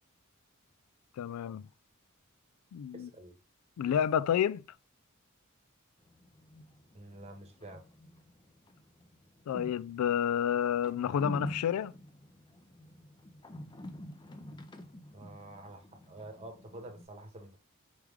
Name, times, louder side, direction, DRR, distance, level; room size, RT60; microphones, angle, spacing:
voice 1, 1.2-1.7 2.7-3.1 3.8-4.6 9.5-11.9, left 9 dB, 80° left, 0.3 m, -30 dB
voice 2, 2.9-3.4 6.9-7.8 15.1-17.6, right 1 dB, 30° right, 1.0 m, -48 dB
sound 1, 6.0-17.1, equal, 20° left, 0.5 m, -48 dB
4.8 x 3.1 x 3.5 m
head